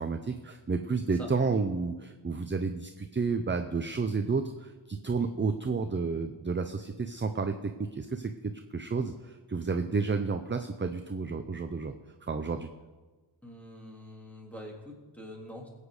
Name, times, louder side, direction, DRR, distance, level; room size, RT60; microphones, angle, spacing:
voice 1, 0.0-11.9 12.3-12.7, right 4 dB, 25° right, 7 dB, 0.7 m, -31 dB
voice 2, 13.4-15.7, equal, 5° left, -1 dB, 3.0 m, -45 dB
20.0 x 8.4 x 4.9 m, 1.3 s
wide cardioid pair, 100°, 48 cm